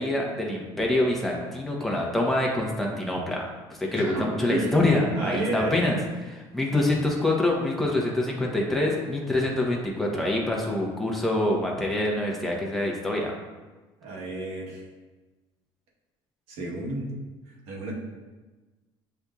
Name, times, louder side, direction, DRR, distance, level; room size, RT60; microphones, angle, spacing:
voice 1, 0.0-3.4 3.8-13.3, left 1 dB, ahead, -2 dB, 0.9 m, -25 dB
voice 2, 3.9-4.7 5.1-5.8 14.0-14.8 16.5-17.1 17.5-17.9, right 2 dB, 75° right, -3 dB, 1.2 m, -32 dB
7.7 x 2.6 x 2.4 m, 1.2 s
cardioid pair, 105°, 11 cm